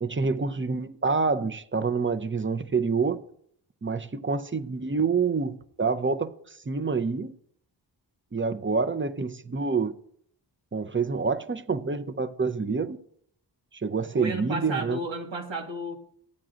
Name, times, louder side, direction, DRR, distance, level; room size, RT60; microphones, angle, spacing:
voice 1, 0.0-3.2 3.8-7.3 8.3-9.9 10.7-13.0 13.7-15.0, right 4 dB, 25° right, 0.7 m, -27 dB
voice 2, 14.2-15.9, right 2 dB, 85° right, 1.8 m, -32 dB
15.0 x 9.1 x 2.5 m
cardioid pair, 50°, 44 cm